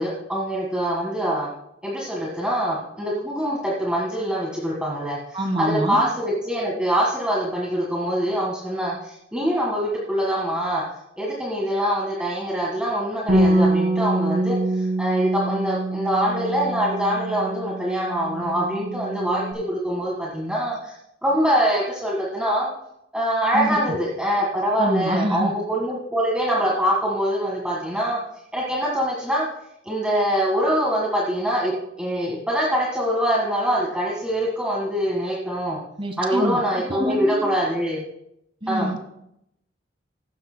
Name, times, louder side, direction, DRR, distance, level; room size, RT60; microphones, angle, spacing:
voice 1, 0.0-1.5 1.8-10.8 11.2-20.9 21.2-22.7 23.1-28.2 28.5-29.5 29.8-31.7 32.0-35.8 36.2-38.0 38.7-38.9, equal, 5° right, -4 dB, 1.7 m, -24 dB
voice 2, 5.3-6.0 23.5-23.8 24.8-25.5 36.0-36.6 36.9-37.4 38.6-39.1, right 1 dB, 30° right, 5 dB, 1.5 m, -25 dB
Bass guitar, 13.3-19.5, right 1 dB, 55° right, 3.0 m, -24 dB
16.0 x 12.5 x 2.2 m, 0.79 s
head